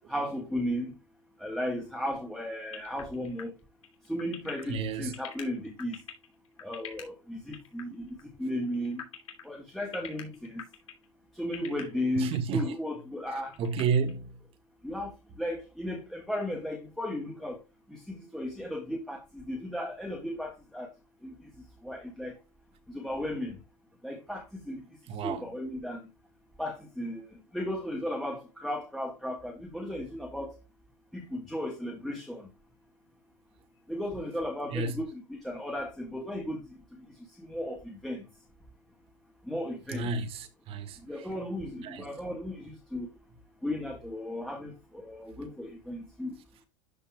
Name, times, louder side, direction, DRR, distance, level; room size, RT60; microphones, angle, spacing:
voice 1, 0.1-0.9 1.4-3.5 4.1-6.0 6.6-9.0 9.4-10.7 11.4-13.6 14.8-17.6 17.9-20.9 21.2-21.3 21.8-22.4 22.9-23.6 24.0-24.8 25.2-26.1 26.6-27.3 27.5-30.6 31.1-32.5 33.9-37.1 37.4-38.3 39.4-40.1 41.1-43.1 43.6-46.4, left 1 dB, ahead, 1.6 m, -35 dB
sound 1, 2.7-7.1 7.5-7.8 8.1-8.2 8.6-9.5 9.9-11.1 11.4-11.8 12.3-12.6 13.0-13.1 13.4-14.1, left 10 dB, 85° left, 2.9 m, -43 dB
voice 2, 4.7-5.1 12.2-12.7 13.6-14.3 25.1-25.5 34.7-35.0 39.9-41.0 41.8-42.0, right 5 dB, 35° right, 1.6 m, -31 dB
12.5 x 5.4 x 2.2 m
supercardioid pair, 130°, 16 cm